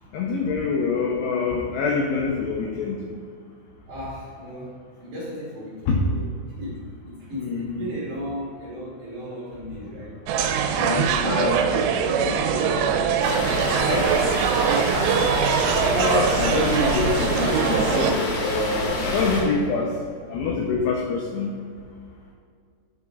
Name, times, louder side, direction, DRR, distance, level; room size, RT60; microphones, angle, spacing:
voice 1, 0.1-3.0 5.9-6.0 7.4-7.9 10.8-11.6 13.9-14.1 15.9-19.9 20.3-21.5, left 4 dB, 90° left, 0 dB, 2.3 m, -25 dB
voice 2, 3.9-10.2 10.4-14.9, equal, 55° right, -8 dB, 2.4 m, -36 dB
sound 1, 10.3-18.1, right 7 dB, 85° right, 3.2 m, -22 dB
sound 2, 13.2-19.4, left 1 dB, 65° left, 3.5 m, -27 dB
11.5 x 9.4 x 2.4 m, 2.1 s
omnidirectional pair, 5.9 m